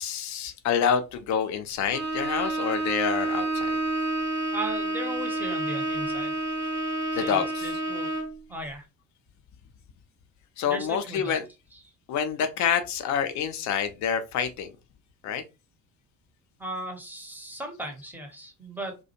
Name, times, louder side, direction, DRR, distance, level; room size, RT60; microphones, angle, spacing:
voice 1, 0.0-3.8 7.1-7.8 10.6-11.5 12.1-14.7 15.2-15.4, left 7 dB, 40° left, 0.4 m, -27 dB
Bowed string instrument, 1.9-8.4, right 2 dB, 75° right, 0.8 m, -29 dB
voice 2, 4.5-6.4 7.2-8.1 8.5-8.9 10.7-11.3 11.7-11.8 16.6-19.0, right 1 dB, 5° right, 0.7 m, -37 dB
2.4 x 2.1 x 2.7 m
figure-of-eight pair, 50°, 49 cm